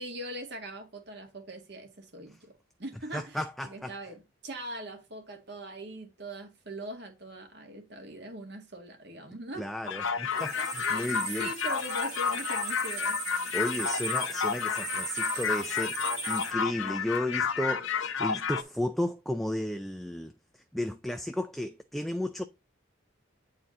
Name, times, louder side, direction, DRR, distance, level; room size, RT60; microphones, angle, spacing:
voice 1, 0.0-9.7 10.3-11.1 11.4-13.2, right 1 dB, 55° right, 1.8 m, -42 dB
voice 2, 3.1-3.9 9.6-11.5 13.5-22.5, left 1 dB, ahead, 0.3 m, -34 dB
sound 1, 9.9-18.6, left 6 dB, 75° left, 0.8 m, -31 dB
sound 2, 10.3-16.5, right 5 dB, 35° right, 1.9 m, -38 dB
8.6 x 4.3 x 3.8 m
head